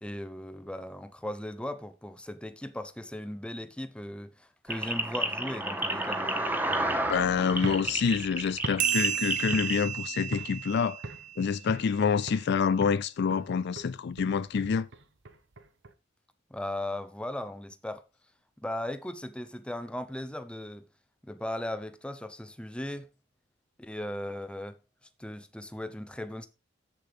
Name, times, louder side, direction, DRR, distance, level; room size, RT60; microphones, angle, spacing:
voice 1, 0.0-6.3 16.5-18.0 18.6-20.9 21.2-23.1 23.8-24.8 25.2-26.5, left 1 dB, 5° left, 0.7 m, -37 dB
sound 1, 4.7-9.8, right 1 dB, 10° right, 1.1 m, -31 dB
voice 2, 7.0-11.0 11.4-14.9, left 6 dB, 60° left, 0.4 m, -27 dB
sound 2, 7.5-10.0 10.3-10.7 11.0-12.0 12.3-12.6 12.8-15.9, right 2 dB, 65° right, 0.9 m, -42 dB
sound 3, 8.8-11.8, right 11 dB, 40° right, 0.7 m, -33 dB
7.7 x 7.0 x 5.2 m
head